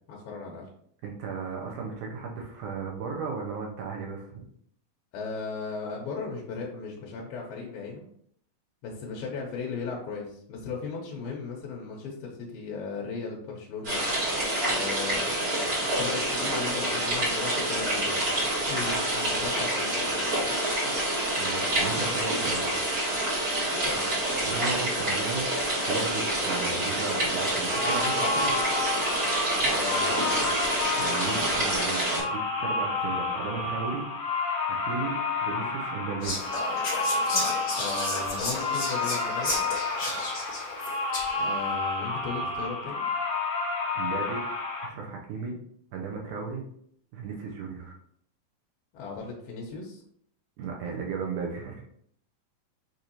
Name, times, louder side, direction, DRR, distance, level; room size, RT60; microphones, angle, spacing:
voice 1, 0.1-0.7 5.1-8.1 8.8-14.1 14.7-18.4 18.6-20.6 23.7-24.1 29.6-30.6 37.8-39.6 41.4-43.0 48.9-50.0, left 4 dB, 90° left, -1 dB, 2.5 m, -37 dB
voice 2, 1.0-4.4 21.4-22.8 24.4-25.5 25.8-28.5 31.0-34.1 34.7-36.4 44.0-44.4 44.8-45.6 45.9-46.6 47.1-48.0 50.6-51.8, right 5 dB, 75° right, -1 dB, 1.9 m, -35 dB
sound 1, 13.8-32.2, right 1 dB, 35° right, 1.5 m, -27 dB
sound 2, 27.5-44.9, left 3 dB, 70° left, 1.5 m, -30 dB
Whispering, 36.2-41.5, left 2 dB, 50° left, 1.6 m, -32 dB
6.3 x 2.6 x 2.8 m, 0.66 s
omnidirectional pair, 4.2 m